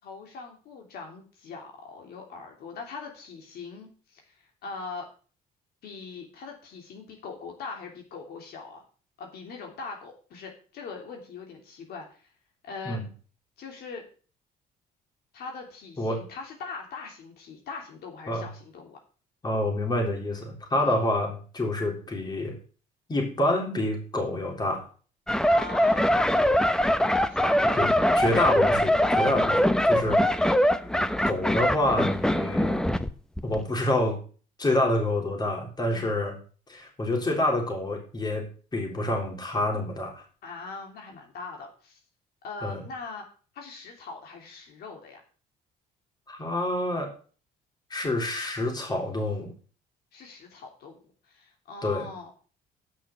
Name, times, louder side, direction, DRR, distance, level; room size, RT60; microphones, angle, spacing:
voice 1, 0.0-5.1 5.8-8.8 9.2-12.3 12.6-13.0 13.6-14.0 15.3-19.0 20.8-21.0 25.4-26.2 27.3-27.8 35.9-36.2 40.4-42.0 42.4-43.2 43.5-45.2 50.1-51.0 51.2-52.3, left 4 dB, 70° left, 1 dB, 3.0 m, -41 dB
voice 2, 19.4-22.6 23.1-24.8 27.7-30.2 31.2-32.8 33.4-34.2 34.6-36.4 36.7-38.5 38.7-40.2 42.6-42.8 46.3-47.1 47.9-49.5 51.8-52.1, left 1 dB, 25° left, 2 dB, 3.7 m, -27 dB
sound 1, 25.3-33.1 33.4-33.6, equal, 5° left, 0.7 m, -23 dB
9.2 x 6.1 x 7.3 m, 0.40 s
cardioid pair, 110°, 17 cm